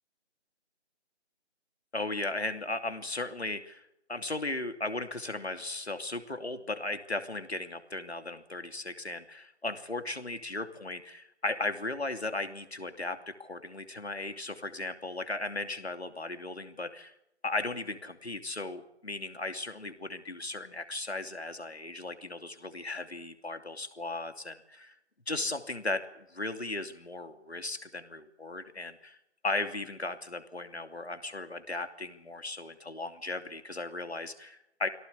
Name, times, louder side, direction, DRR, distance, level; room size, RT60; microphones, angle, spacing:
voice 1, 1.9-17.1 17.4-24.9 25.3-29.2 29.4-34.9, left 2 dB, 65° left, 7 dB, 2.9 m, -36 dB
23.5 x 17.5 x 8.4 m, 0.81 s
figure-of-eight pair, 165°, 34 cm